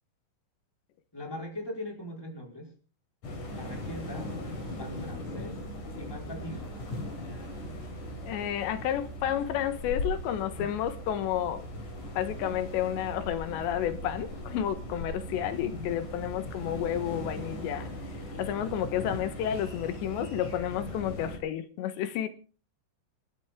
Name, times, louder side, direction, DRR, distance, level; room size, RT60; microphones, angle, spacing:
voice 1, 1.1-2.7 3.5-4.3 4.8-5.6 6.0-6.7, left 1 dB, 5° left, 4.4 m, -40 dB
sound 1, 3.2-21.4, left 1 dB, 50° left, 5.1 m, -39 dB
voice 2, 8.2-11.7 12.1-17.9 18.4-22.3, left 10 dB, 85° left, 3.5 m, -31 dB
27.5 x 12.0 x 3.7 m
omnidirectional pair, 4.9 m